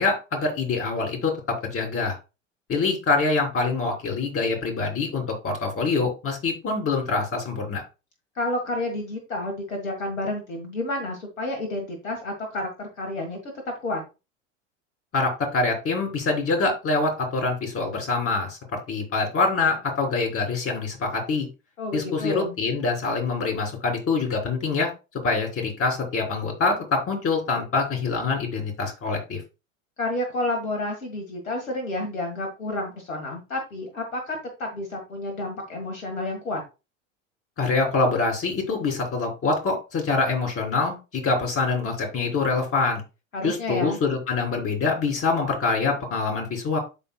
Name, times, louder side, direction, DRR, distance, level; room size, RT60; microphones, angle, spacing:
voice 1, 0.0-2.2 2.7-7.8 15.1-21.5 21.9-24.9 25.2-29.4 37.6-43.0 43.4-46.8, left 3 dB, 35° left, 1 dB, 3.8 m, -25 dB
voice 2, 8.4-13.4 13.8-14.0 21.8-22.5 30.0-36.6 43.3-44.0, left 1 dB, 85° left, 2 dB, 1.8 m, -30 dB
12.5 x 4.2 x 2.3 m, 0.28 s
hypercardioid pair, 80°, 39 cm